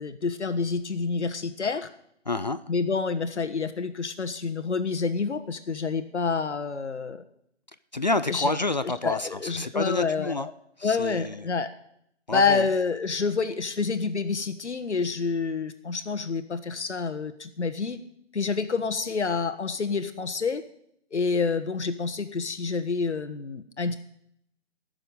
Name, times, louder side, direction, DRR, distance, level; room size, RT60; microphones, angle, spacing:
voice 1, 0.0-1.9 2.7-7.2 8.3-8.5 9.0-10.5 10.8-11.7 12.3-18.0 18.3-20.6 21.1-24.0, left 4 dB, 70° left, 9 dB, 1.5 m, -28 dB
voice 2, 2.3-2.6 7.9-10.5 10.8-11.5 12.3-12.7, left 2 dB, 40° left, 13 dB, 0.5 m, -28 dB
13.0 x 7.0 x 8.9 m, 0.72 s
figure-of-eight pair, 160°, 35 cm